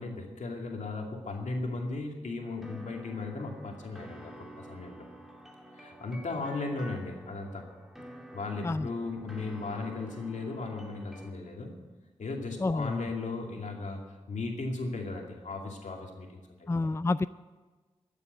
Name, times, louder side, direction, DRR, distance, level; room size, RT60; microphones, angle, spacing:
voice 1, 0.0-5.1 5.7-7.7 8.3-11.7 12.2-16.7, left 3 dB, 85° left, 1 dB, 2.5 m, -36 dB
sound 1, 2.4-11.3, right 1 dB, 5° right, 2.6 m, -49 dB
voice 2, 12.6-13.1 16.7-17.3, left 3 dB, 20° left, 16 dB, 0.4 m, -29 dB
14.0 x 8.3 x 9.1 m, 1.3 s
cardioid pair, 45°, 12 cm